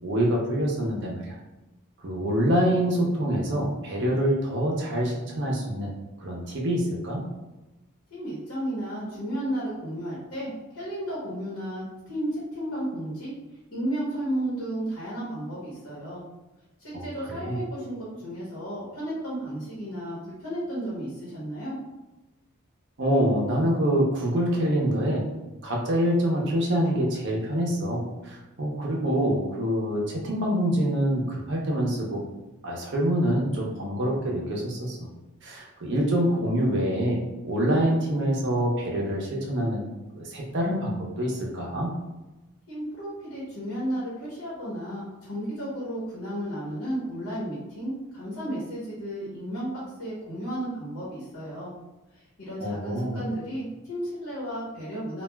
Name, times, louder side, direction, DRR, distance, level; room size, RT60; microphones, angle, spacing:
voice 1, 0.0-1.4 2.0-5.9 6.2-7.2 16.9-17.0 17.3-17.6 23.0-25.3 25.6-32.2 32.6-35.1 35.4-39.8 40.1-41.9 52.6-53.2, equal, 55° right, -2 dB, 0.6 m, -26 dB
voice 2, 8.1-13.3 13.7-16.2 16.8-21.7 42.7-51.7 52.1-55.2, right 1 dB, 65° left, -8 dB, 1.1 m, -33 dB
3.3 x 2.3 x 2.2 m, 1.0 s
head